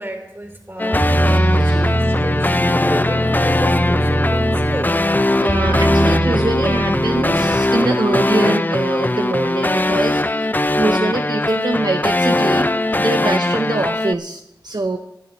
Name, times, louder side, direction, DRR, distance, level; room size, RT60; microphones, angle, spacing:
voice 1, 0.0-5.0, right 1 dB, 30° right, 2 dB, 3.0 m, -31 dB
sound 1, 0.8-14.1, left 2 dB, 20° left, 0.4 m, -20 dB
sound 2, 0.9-5.0 5.5-7.5, right 1 dB, 10° right, 1.5 m, -20 dB
voice 2, 1.3-1.9 5.4-12.7 13.0-15.0, right 2 dB, 60° right, 4 dB, 0.7 m, -23 dB
25.0 x 11.0 x 3.1 m, 0.89 s
wide cardioid pair, 50°, 8 cm